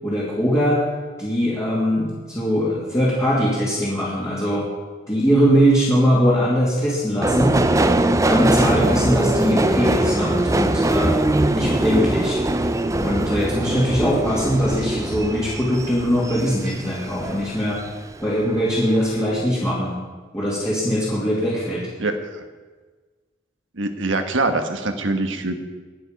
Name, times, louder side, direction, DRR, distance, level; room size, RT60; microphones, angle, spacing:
voice 1, 0.0-0.8 1.2-4.7 5.1-7.6 8.3-11.1 11.5-12.4 12.9-17.8 18.2-20.0 20.3-21.9, equal, 15° left, -7 dB, 2.5 m, -21 dB
Subway metro underground, 7.2-17.9 18.3-19.0 19.3-19.4, right 1 dB, 15° right, 0.5 m, -22 dB
voice 2, 22.0-22.4 23.8-25.6, right 2 dB, 80° right, 7 dB, 1.3 m, -24 dB
20.5 x 7.0 x 5.3 m, 1.4 s
head